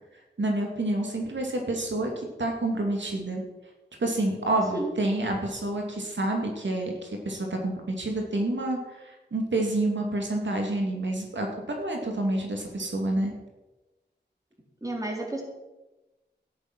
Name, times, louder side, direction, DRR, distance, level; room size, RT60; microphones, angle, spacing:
voice 1, 0.4-3.4 4.0-13.3, right 2 dB, 90° right, 1 dB, 2.6 m, -28 dB
voice 2, 14.8-15.4, right 2 dB, 20° right, -1 dB, 3.9 m, -31 dB
13.5 x 11.0 x 6.1 m, 1.1 s
wide cardioid pair, 70°, 18 cm